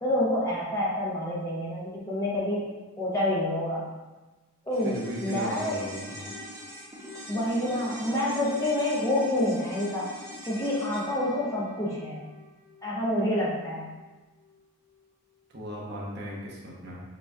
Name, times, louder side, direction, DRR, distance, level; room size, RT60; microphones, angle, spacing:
voice 1, 0.0-2.7 3.0-3.9 4.6-5.8 7.3-10.1 10.4-12.2 12.8-13.9, left 1 dB, 15° left, -6 dB, 0.9 m, -28 dB
sound 1, 4.7-13.2 13.5-13.6, left 1 dB, 15° right, 0.5 m, -42 dB
voice 2, 4.8-6.3 15.5-17.0, equal, 50° right, -4 dB, 0.8 m, -37 dB
6.8 x 3.1 x 2.3 m, 1.2 s
head